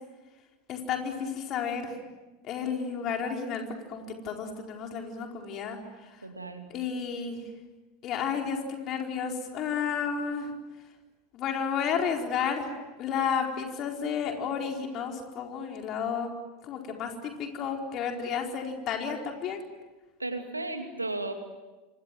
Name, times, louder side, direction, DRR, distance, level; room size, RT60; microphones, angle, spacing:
voice 1, 0.7-2.0 2.4-3.6 3.9-6.1 6.7-7.4 8.0-10.5 11.3-12.7 13.0-16.3 16.6-19.6, left 7 dB, 40° left, 2 dB, 4.5 m, -32 dB
voice 2, 6.2-6.7 20.2-21.3, right 2 dB, 85° right, 6 dB, 2.5 m, -34 dB
29.0 x 24.5 x 7.7 m, 1.2 s
figure-of-eight pair, 80°, 0 cm